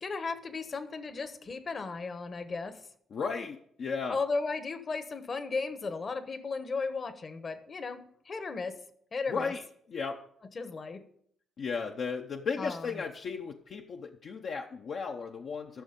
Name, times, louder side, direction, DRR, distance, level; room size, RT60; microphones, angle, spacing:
voice 1, 0.0-2.8 4.1-8.8 9.1-9.5 10.5-11.0 12.6-12.8, left 4 dB, 40° left, 11 dB, 1.1 m, -35 dB
voice 2, 3.1-4.2 9.3-10.3 11.6-15.8, left 5 dB, 55° left, 3 dB, 0.7 m, -35 dB
14.0 x 6.2 x 5.2 m, 0.67 s
cardioid pair, 90°, 0 cm